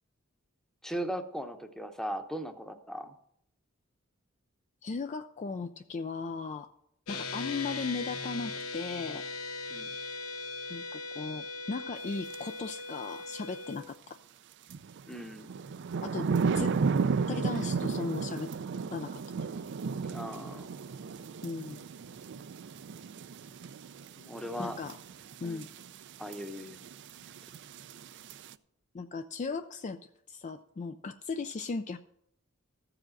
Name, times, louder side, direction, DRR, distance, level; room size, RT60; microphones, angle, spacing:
voice 1, 0.8-3.1 9.7-9.9 15.1-15.6 20.1-20.7 24.2-24.8 25.4-25.7 26.2-26.8, equal, ahead, 6 dB, 0.8 m, -38 dB
voice 2, 4.8-6.7 7.1-9.3 10.7-14.2 16.0-16.8 17.3-18.5 18.9-19.2 21.4-21.8 24.6-25.0 25.4-25.7 28.9-30.0 30.3-32.0, left 4 dB, 35° left, 8 dB, 0.4 m, -37 dB
sound 1, 7.1-13.8, left 3 dB, 75° left, 0.9 m, -39 dB
sound 2, 12.3-12.4 14.7-28.5, right 5 dB, 55° right, 0.4 m, -34 dB
14.0 x 4.9 x 7.6 m, 0.73 s
head